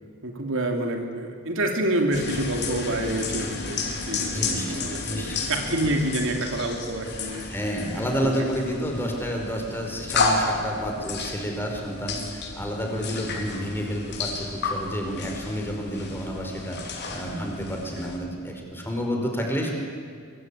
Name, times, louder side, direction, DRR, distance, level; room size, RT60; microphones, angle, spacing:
voice 1, 0.2-7.5 7.9-8.4 18.0-18.1, right 1 dB, 65° right, 3 dB, 2.8 m, -28 dB
sound 1, 2.1-18.2, left 3 dB, 50° left, 4.2 m, -32 dB
voice 2, 4.3-5.5 7.5-16.8 17.1-19.7, equal, 10° left, 1 dB, 5.0 m, -30 dB
24.0 x 23.5 x 8.5 m, 2.1 s
head